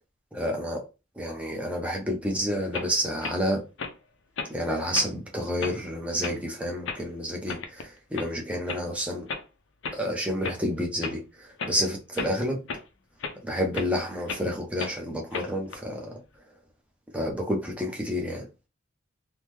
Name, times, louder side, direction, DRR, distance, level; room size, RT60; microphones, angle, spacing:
voice 1, 0.3-0.8 1.2-3.6 4.5-9.3 9.9-12.6 13.4-16.2 17.1-18.5, equal, 5° right, 0.6 m, -29 dB
sound 1, 2.7-2.9 3.2-3.4 3.8-3.9 4.4-4.6 4.9-5.1 5.6-5.8 6.2-6.4 6.8-7.0 7.5-7.8 8.1-8.3 8.7-8.8 9.3-9.4 9.8-10.0 10.4-10.6 11.0-11.1 11.6-11.8 12.1-12.3 12.7-12.8 13.2-13.4 13.7-13.9 14.3-14.4 14.8-15.0 15.3-15.8, left 4 dB, 65° left, 0.5 m, -34 dB
3.5 x 2.1 x 3.0 m
head